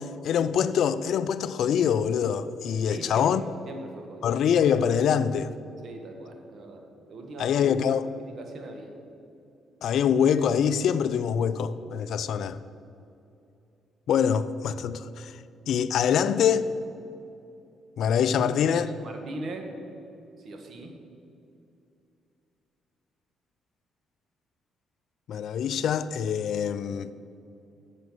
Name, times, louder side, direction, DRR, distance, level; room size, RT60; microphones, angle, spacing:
voice 1, 0.0-3.4 4.2-5.5 7.4-8.1 9.8-12.6 14.1-15.4 15.7-16.6 18.0-18.9 25.3-27.1, left 8 dB, 70° left, 0.3 m, -24 dB
voice 2, 2.9-3.3 3.7-4.3 5.8-7.6 8.2-8.9 18.6-19.8 20.4-21.0, right 2 dB, 55° right, 1.4 m, -40 dB
7.2 x 6.3 x 7.8 m
supercardioid pair, 60°, 0 cm